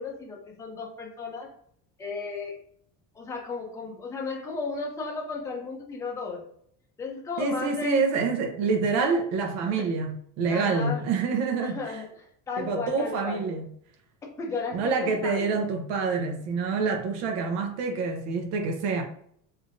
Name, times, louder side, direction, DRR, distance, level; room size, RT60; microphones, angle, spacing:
voice 1, 0.0-1.5 2.0-2.6 3.1-6.4 7.0-8.0 9.8-9.9 10.5-11.0 11.6-12.1 12.5-13.4 14.4-15.7, left 4 dB, 10° left, 0.4 m, -34 dB
voice 2, 7.4-12.0 12.6-13.7 14.7-19.0, right 4 dB, 80° right, 0.9 m, -27 dB
3.3 x 2.7 x 2.5 m
cardioid pair, 160°, 42 cm